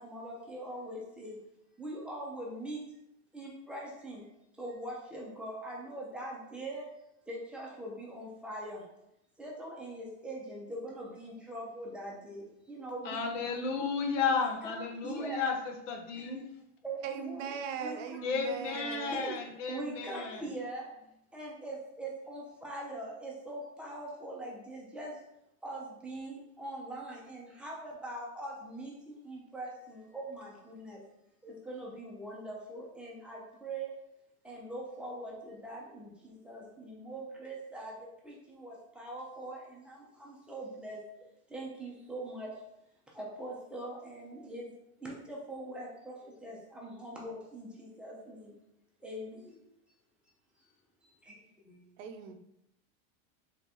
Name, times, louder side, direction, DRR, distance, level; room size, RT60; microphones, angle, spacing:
voice 1, 0.0-1.4 1.8-2.8 3.3-4.3 4.5-6.9 7.3-8.8 9.4-13.2 14.3-15.5 16.3-16.4 16.8-17.5 17.8-18.2 18.8-18.9 19.1-19.2 19.7-20.9 21.3-25.2 25.6-31.0 31.4-33.9 34.4-42.5 43.1-48.6 49.0-49.6 51.0-51.9, right 1 dB, 5° right, -4 dB, 0.6 m, -42 dB
voice 2, 13.0-16.5 18.2-20.4, left 5 dB, 70° left, 3 dB, 0.9 m, -33 dB
voice 3, 17.0-19.4 52.0-52.3, right 7 dB, 80° right, 6 dB, 0.6 m, -39 dB
3.7 x 3.5 x 2.9 m, 0.83 s
supercardioid pair, 155°, 38 cm